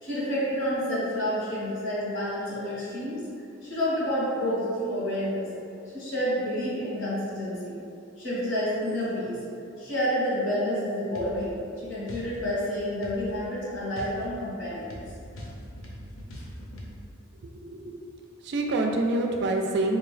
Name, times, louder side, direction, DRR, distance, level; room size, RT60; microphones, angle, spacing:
voice 1, 0.0-3.2 3.6-5.4 5.9-7.8 8.2-9.4 9.8-15.0, equal, 65° left, -8 dB, 1.3 m, -29 dB
sound 1, 11.2-11.4 12.1-12.3 13.0-13.3 14.0-16.9, equal, 85° left, 0.6 m, -41 dB
voice 2, 17.4-18.1 18.4-20.0, right 2 dB, 55° right, 2 dB, 0.3 m, -27 dB
3.7 x 2.7 x 3.2 m, 2.5 s
head